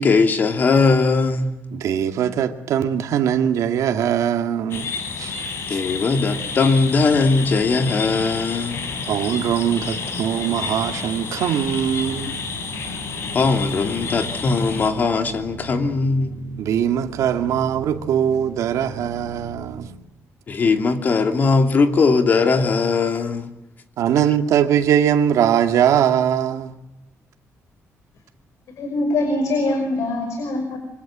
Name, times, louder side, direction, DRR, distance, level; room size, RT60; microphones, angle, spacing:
voice 1, 0.0-1.5 5.7-8.8 13.3-16.4 20.5-23.5, left 4 dB, 35° left, 2.8 m, -19 dB
voice 2, 1.7-4.9 5.2-5.4 5.7-5.8 9.1-12.4 16.6-19.9 24.0-26.7, right 9 dB, 85° right, 2.3 m, -21 dB
sound 1, 4.7-14.9, left 5 dB, 50° left, 3.9 m, -30 dB
sound 2, 6.2-19.9, right 5 dB, 55° right, 5.5 m, -41 dB
voice 3, 28.8-30.8, left 2 dB, 70° left, 5.6 m, -23 dB
26.0 x 25.5 x 7.6 m
cardioid pair, 180°, 5 cm